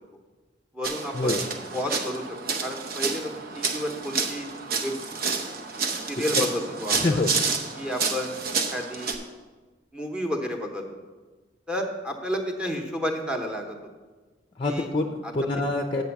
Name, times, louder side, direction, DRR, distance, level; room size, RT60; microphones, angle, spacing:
voice 1, 0.7-1.3 1.7-2.3 2.6-4.5 4.8-4.9 5.2-5.4 6.1-7.2 7.8-8.4 8.7-9.2 9.9-10.8 11.7-13.8 14.6-14.9 15.2-15.3, equal, 5° right, 2 dB, 0.9 m, -31 dB
sound 1, 0.8-9.1, right 4 dB, 55° right, 0.8 m, -29 dB
voice 2, 6.9-7.3 14.6-16.0, left 2 dB, 30° left, 4 dB, 0.5 m, -26 dB
7.6 x 5.3 x 7.0 m, 1.3 s
head